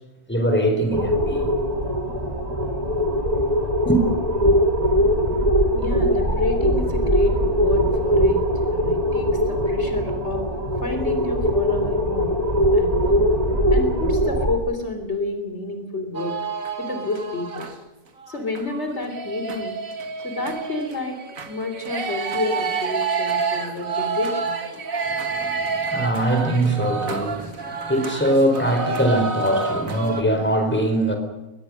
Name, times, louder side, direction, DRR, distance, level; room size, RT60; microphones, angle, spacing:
voice 1, 0.3-1.5 3.8-4.0 25.0-31.2, right 1 dB, 10° left, 4 dB, 4.4 m, -22 dB
sound 1, 0.9-14.6, equal, 30° right, 2.6 m, -21 dB
voice 2, 5.8-8.4 8.7-10.5 10.8-12.3 12.7-13.2 13.7-16.4 16.8-17.7 18.3-19.8 20.2-21.2 21.5-24.6, left 2 dB, 55° left, 6 dB, 3.8 m, -29 dB
sound 2, 16.1-17.8 18.2-30.2, right 5 dB, 85° right, 2.3 m, -29 dB
23.5 x 20.5 x 6.5 m, 1.1 s
omnidirectional pair, 1.4 m